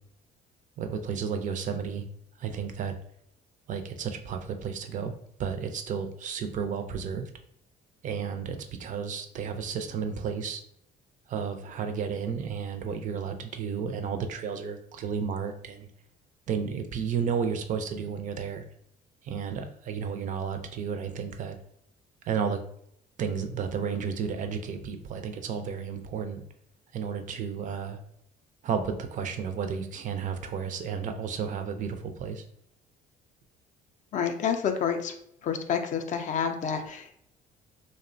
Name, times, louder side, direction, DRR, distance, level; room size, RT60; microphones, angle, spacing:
voice 1, 0.8-2.1 2.4-2.9 3.7-5.1 5.4-7.3 8.0-10.6 11.3-15.9 16.5-18.6 19.2-21.6 22.3-22.6 23.2-26.4 26.9-28.0 28.6-32.4, right 6 dB, 50° right, 7 dB, 0.4 m, -32 dB
voice 2, 34.1-35.1 35.4-37.1, left 7 dB, 45° left, 6 dB, 0.4 m, -29 dB
2.7 x 2.0 x 2.5 m, 0.70 s
cardioid pair, 110°, 17 cm